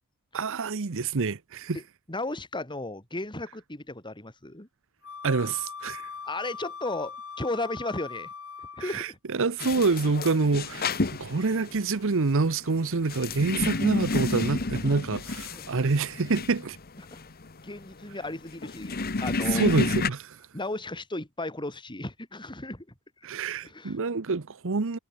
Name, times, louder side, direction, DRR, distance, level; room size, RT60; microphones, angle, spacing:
voice 1, 0.3-1.8 5.2-6.1 8.8-16.8 19.5-20.4 23.2-25.0, right 4 dB, 60° right, 0.8 m, -27 dB
voice 2, 2.1-4.7 6.2-8.3 8.6-9.2 15.5-15.6 17.1-17.2 17.6-19.8 20.5-22.9 23.6-24.0, left 2 dB, 20° left, 3.5 m, -35 dB
Wind instrument woodwind instrument, 5.0-9.1, left 5 dB, 65° left, 4.6 m, -41 dB
sound 1, 9.6-20.1, left 3 dB, 45° left, 1.2 m, -31 dB
head